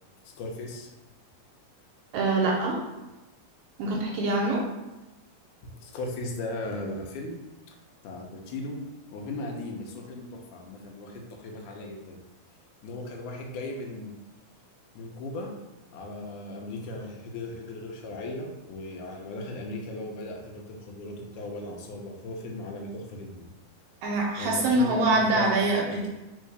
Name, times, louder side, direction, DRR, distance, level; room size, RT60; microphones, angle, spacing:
voice 1, 0.2-0.9 5.6-7.4 7.7-7.8 8.0-8.8 9.1-12.2 12.8-14.1 15.0-15.5 15.9-23.5 24.4-26.1, left 2 dB, 80° left, 1 dB, 2.1 m, -37 dB
voice 2, 2.1-2.8 3.8-4.6 24.0-26.1, right 2 dB, 80° right, -1 dB, 1.8 m, -24 dB
4.5 x 3.6 x 3.2 m, 1.0 s
omnidirectional pair, 3.7 m